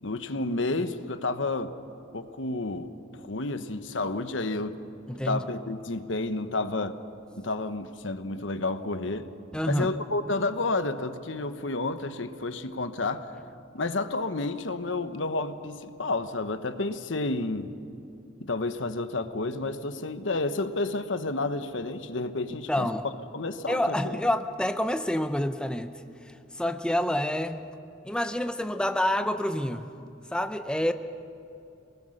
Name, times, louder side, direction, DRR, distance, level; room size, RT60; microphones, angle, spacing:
voice 1, 0.0-1.7 2.1-2.9 3.2-4.8 5.2-7.0 7.3-9.3 9.6-13.3 13.7-17.7 18.4-22.9 23.3-24.2, left 2 dB, 85° left, 10 dB, 1.1 m, -30 dB
voice 2, 5.1-5.4 9.5-9.9 22.7-23.0 23.7-25.9 26.2-27.7 28.0-29.9 30.3-30.9, left 1 dB, 5° left, 8 dB, 0.6 m, -28 dB
27.0 x 19.5 x 6.6 m, 2.7 s
head